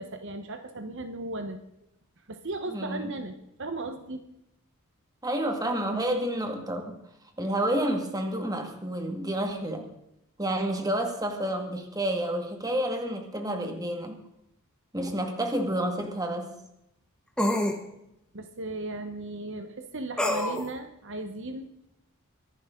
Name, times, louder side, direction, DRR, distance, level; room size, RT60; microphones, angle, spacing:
voice 1, 0.0-1.6 2.3-4.3 18.3-21.7, right 2 dB, 60° right, 8 dB, 1.2 m, -36 dB
voice 2, 2.7-3.1 5.2-7.0 7.4-9.9 10.4-14.2 14.9-16.5, right 1 dB, 15° right, 4 dB, 2.1 m, -29 dB
sound 1, 15.0-15.1 17.4-17.8 20.2-20.7, left 1 dB, 5° left, 1.6 m, -26 dB
24.0 x 11.5 x 3.9 m, 0.82 s
head